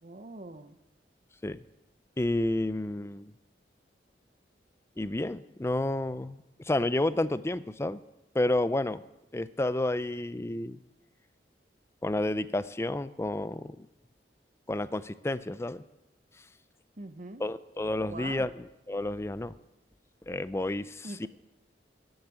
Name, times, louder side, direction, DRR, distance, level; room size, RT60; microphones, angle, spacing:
voice 1, 0.0-0.8 17.0-17.4 18.1-18.5 21.0-21.3, right 2 dB, 45° right, 10 dB, 0.9 m, -43 dB
voice 2, 2.2-3.3 5.0-8.0 8.3-9.0 9.3-10.8 12.0-13.9 14.7-15.8 17.4-18.5 18.9-19.5 20.3-21.3, left 1 dB, 15° left, 15 dB, 0.4 m, -30 dB
13.0 x 8.0 x 8.7 m, 0.96 s
head